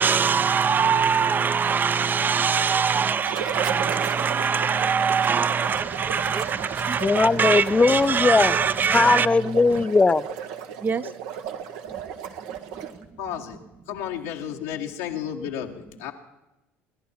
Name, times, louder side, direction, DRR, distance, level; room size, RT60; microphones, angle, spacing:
voice 1, 0.0-9.3 10.8-11.1, right 6 dB, 30° right, 0.6 m, -23 dB
sound 1, 3.1-13.0, right 8 dB, 75° right, 1.1 m, -34 dB
voice 2, 7.0-8.5 8.9-10.4, left 3 dB, 20° left, 0.5 m, -19 dB
voice 3, 13.2-13.6 13.9-16.1, left 9 dB, 85° left, 1.3 m, -32 dB
27.5 x 11.0 x 4.3 m
supercardioid pair, 80°, 6 cm